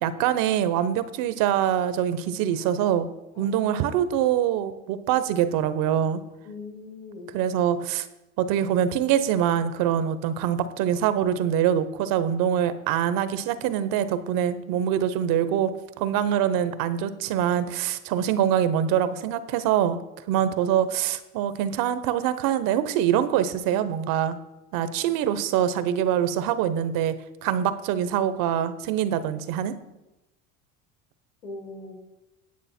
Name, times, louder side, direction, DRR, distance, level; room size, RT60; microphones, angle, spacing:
voice 1, 0.0-3.1 3.4-6.2 7.3-8.1 8.4-20.0 20.3-24.4 24.7-27.1 27.4-29.8, right 10 dB, 65° right, 13 dB, 0.8 m, -24 dB
voice 2, 6.4-7.4 31.4-31.9, left 3 dB, 85° left, -3 dB, 4.1 m, -40 dB
9.5 x 8.1 x 4.3 m, 0.97 s
supercardioid pair, 85°, 36 cm